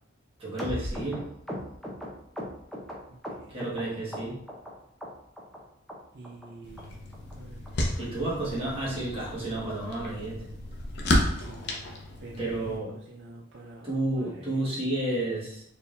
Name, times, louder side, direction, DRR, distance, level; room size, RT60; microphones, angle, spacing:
voice 1, 0.4-1.2 3.5-4.3 8.0-10.4 12.4-12.9 13.8-15.6, right 1 dB, 25° right, -7 dB, 1.6 m, -31 dB
sound 1, 0.6-3.8 4.1-4.7 5.0-5.6 5.9-6.0 6.2-6.5 6.8-6.9 7.1-7.3 7.6-7.7 8.0-8.2 8.5-8.6 8.9-9.1 9.4-9.5 9.8-10.0 10.3-10.4, equal, ahead, 0.7 m, -38 dB
voice 2, 6.1-6.9 7.3-7.6 11.5-11.8 12.2-12.3 12.7-12.8 13.1-13.8 14.2-14.4, right 3 dB, 55° right, -2 dB, 0.5 m, -46 dB
sound 2, 6.6-12.8, left 1 dB, 55° left, 0.7 m, -32 dB
4.3 x 3.4 x 2.6 m, 0.74 s
head